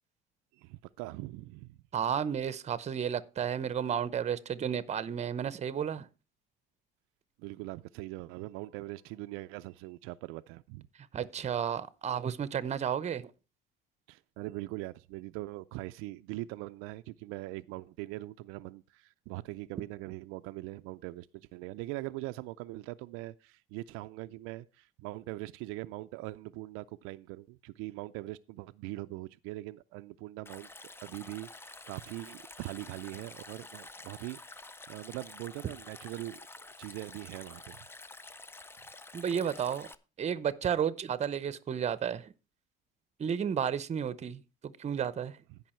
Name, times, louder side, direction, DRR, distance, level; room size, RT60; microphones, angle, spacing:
voice 1, 0.6-1.8 7.4-10.9 14.1-30.7 31.0-36.5 36.8-37.8 45.5-45.6, right 19 dB, 85° right, 0.4 m, -42 dB
voice 2, 1.9-6.1 11.1-13.2 39.1-39.9 40.2-42.3 43.2-45.4, right 8 dB, 30° right, 0.8 m, -32 dB
Stream, 30.5-40.0, left 2 dB, 10° left, 0.5 m, -49 dB
15.5 x 5.5 x 4.3 m
cardioid pair, 120°, 21 cm